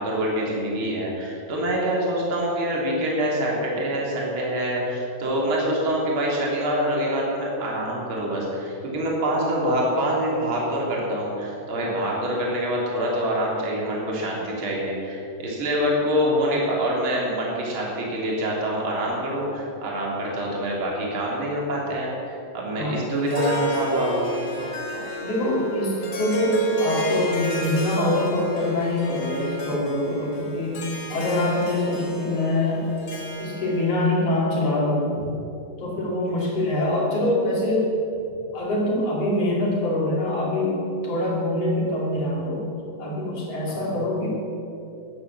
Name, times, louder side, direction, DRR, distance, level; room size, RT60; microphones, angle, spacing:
voice 1, 0.0-24.3 35.1-35.2 43.8-44.0, equal, 35° right, -3 dB, 3.1 m, -25 dB
Harp, 23.1-34.0, left 1 dB, 80° left, 0.9 m, -31 dB
voice 2, 24.9-30.8 31.1-32.9 33.4-35.1 35.8-37.9 38.5-42.6 43.0-44.3, left 1 dB, 40° left, -4 dB, 3.3 m, -24 dB
12.0 x 9.7 x 7.3 m, 2.8 s
omnidirectional pair, 4.8 m